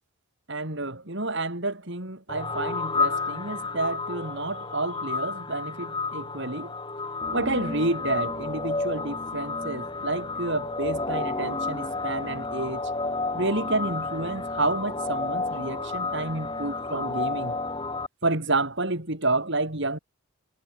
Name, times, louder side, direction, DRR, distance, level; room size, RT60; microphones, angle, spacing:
voice 1, 0.5-6.7 7.3-12.9 13.3-17.5 18.2-20.0, right 2 dB, 50° right, 3.4 m, -29 dB
sound 1, 2.3-18.1, left 3 dB, 20° left, 3.9 m, -31 dB
head